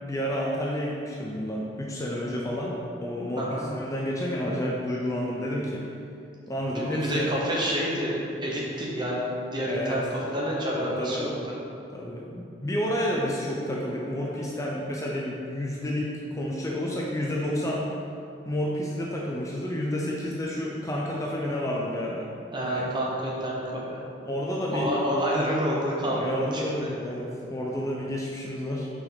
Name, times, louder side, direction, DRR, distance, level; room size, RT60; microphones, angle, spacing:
voice 1, 0.0-5.8 6.5-7.3 9.7-10.0 10.7-11.3 11.9-17.9 18.5-22.3 22.6-22.9 24.2-24.9 26.1-28.9, equal, 20° left, -3 dB, 0.6 m, -30 dB
voice 2, 3.4-3.7 6.7-11.3 22.5-23.6 23.9-24.0 24.7-26.6, equal, 25° right, -4 dB, 1.1 m, -28 dB
6.0 x 5.0 x 4.0 m, 2.5 s
head